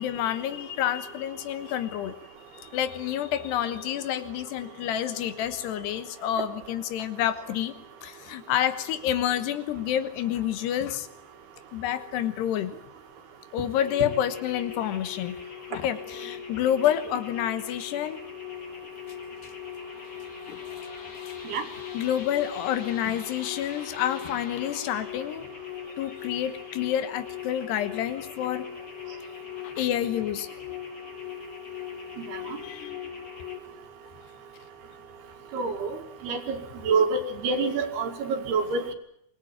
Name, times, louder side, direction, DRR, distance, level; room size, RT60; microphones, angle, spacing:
voice 1, 0.0-2.1 2.5-7.7 8.0-11.1 11.7-12.7 13.5-15.4 15.7-18.2 20.5-21.4 21.9-25.5 26.0-28.7 29.6-30.5 32.4-33.1, left 11 dB, 80° left, 11 dB, 3.3 m, -29 dB
sound 1, 13.8-33.6, left 9 dB, 35° left, 2.4 m, -40 dB
voice 2, 35.5-36.6 36.8-38.9, right 4 dB, 70° right, 6 dB, 4.0 m, -27 dB
25.0 x 20.0 x 9.0 m, 0.73 s
omnidirectional pair, 4.9 m